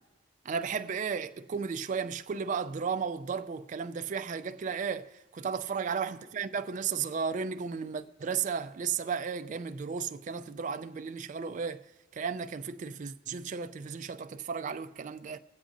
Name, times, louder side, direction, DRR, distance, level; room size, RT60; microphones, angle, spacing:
voice 1, 0.5-11.8 12.1-15.4, right 6 dB, 40° right, 0.3 m, -34 dB
23.5 x 8.1 x 2.6 m
head